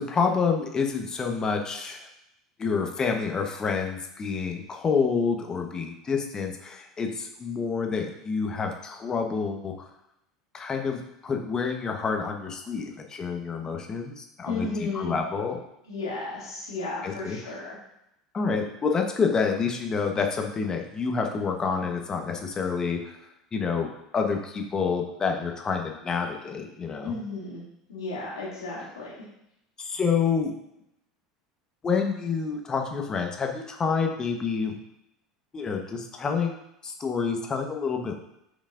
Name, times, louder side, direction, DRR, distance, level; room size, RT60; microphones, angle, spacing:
voice 1, 0.0-2.1 2.6-9.9 10.5-14.7 14.9-15.6 17.0-17.4 18.3-23.2 23.5-27.2 29.8-30.5 31.8-34.7 35.5-36.6 36.8-38.2, left 5 dB, 30° left, 3 dB, 1.1 m, -28 dB
voice 2, 14.5-15.1 15.9-17.7 27.0-27.6 27.9-29.1, left 3 dB, 85° left, -6 dB, 2.5 m, -33 dB
8.7 x 5.3 x 2.6 m, 0.81 s
hypercardioid pair, 75°, 2 cm